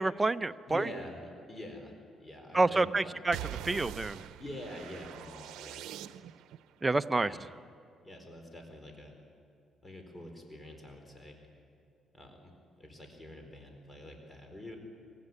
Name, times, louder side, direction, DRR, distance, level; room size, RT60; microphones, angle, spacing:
voice 1, 0.0-0.9 2.5-3.4 3.6-4.2 6.8-7.3, right 2 dB, 20° right, 11 dB, 0.7 m, -28 dB
voice 2, 0.7-1.9 2.2-3.2 4.4-5.8 7.2-7.4 8.0-9.2 9.8-11.4 12.1-12.5 12.8-14.8, left 1 dB, 20° left, 4 dB, 4.3 m, -45 dB
sound 1, 3.3-6.6, right 12 dB, 90° right, 0.7 m, -43 dB
23.5 x 16.5 x 9.7 m, 2.5 s
cardioid pair, 90°, 0 cm